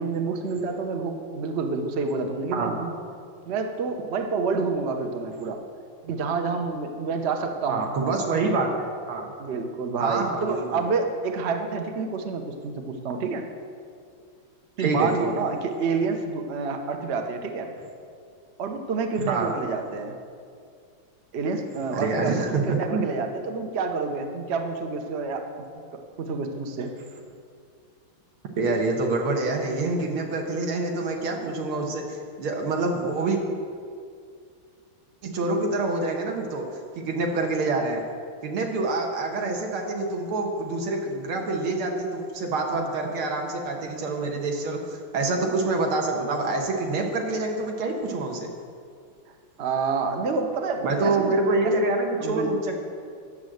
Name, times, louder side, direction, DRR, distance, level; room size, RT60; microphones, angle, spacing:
voice 1, 0.0-2.9 3.5-5.6 6.0-7.9 8.4-8.5 9.4-13.5 14.8-17.7 18.6-20.2 21.3-25.8 26.2-27.0 42.7-43.1 45.4-45.5 49.6-51.4 51.6-51.7 52.2-52.5, right 4 dB, 55° right, 5 dB, 0.7 m, -28 dB
voice 2, 7.7-9.3 10.0-10.8 14.8-15.3 19.3-19.5 21.9-23.0 28.6-33.4 35.2-36.7 37.0-38.0 38.4-48.5 50.8-52.8, right 3 dB, 80° right, 1 dB, 2.0 m, -26 dB
10.5 x 6.3 x 7.8 m, 2.2 s
omnidirectional pair, 2.4 m